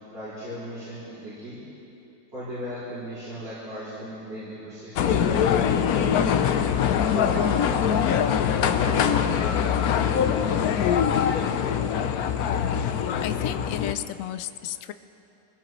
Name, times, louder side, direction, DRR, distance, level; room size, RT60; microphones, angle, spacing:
voice 1, 0.1-1.6 2.3-6.3 7.1-8.1 8.6-11.2, equal, 90° right, -13 dB, 5.6 m, -37 dB
sound 1, 5.0-13.9, left 8 dB, 65° left, 1.0 m, -23 dB
voice 2, 13.2-14.9, left 12 dB, 85° left, 11 dB, 0.7 m, -33 dB
23.0 x 17.5 x 3.1 m, 2.9 s
omnidirectional pair, 1.9 m